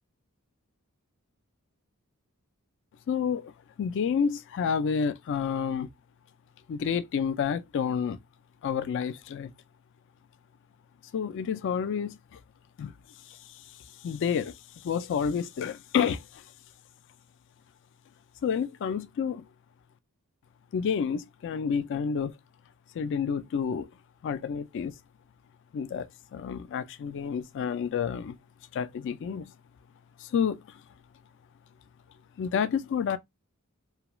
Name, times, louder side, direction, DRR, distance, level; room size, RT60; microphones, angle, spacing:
voice 1, 3.1-3.5 3.8-5.9 6.7-8.2 8.6-9.5 11.1-12.4 12.8-12.9 13.3-13.6 14.0-16.4 18.4-19.5 20.7-22.3 22.9-23.9 24.2-24.9 25.7-28.4 28.7-29.5 30.2-30.8 32.4-33.2, left 7 dB, 55° left, 0.3 m, -29 dB
2.3 x 2.3 x 2.9 m
head